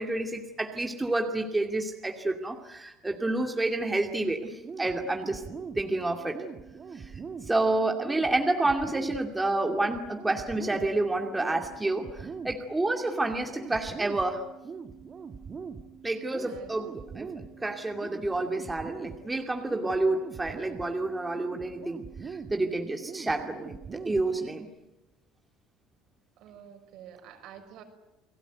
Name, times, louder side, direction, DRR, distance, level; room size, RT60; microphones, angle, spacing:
voice 1, 0.0-5.4 5.8-6.4 6.9-7.1 7.4-14.4 16.0-24.7, right 2 dB, 10° right, 3 dB, 2.5 m, -29 dB
sound 1, 4.6-24.6, right 5 dB, 30° right, 2.1 m, -43 dB
voice 2, 16.3-16.7 26.4-27.8, right 9 dB, 65° right, 5 dB, 5.9 m, -48 dB
29.5 x 19.5 x 9.4 m, 0.96 s
cardioid pair, 130°, 0 cm